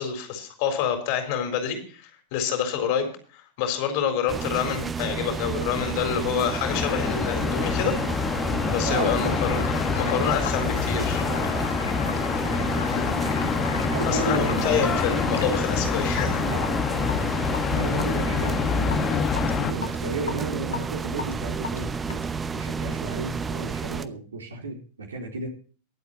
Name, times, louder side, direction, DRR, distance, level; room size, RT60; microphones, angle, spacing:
voice 1, 0.0-8.0 8.2-9.6 10.0-11.3 12.9-13.1 14.1-16.4, left 8 dB, 45° left, 5 dB, 4.0 m, -27 dB
sound 1, 4.3-24.1, right 5 dB, 15° right, 0.8 m, -31 dB
sound 2, 6.6-19.7, left 7 dB, 25° left, 1.5 m, -27 dB
voice 2, 8.5-9.6 10.0-10.1 11.3-12.0 12.3-13.1 13.7-15.3 15.9-16.1 16.4-17.0 17.7-22.3 22.5-25.5, right 3 dB, 70° right, 1 dB, 3.7 m, -34 dB
sound 3, 8.9-22.6, left 7 dB, 70° left, 1.6 m, -38 dB
23.0 x 8.1 x 3.0 m, 0.40 s
figure-of-eight pair, 90°, 0 cm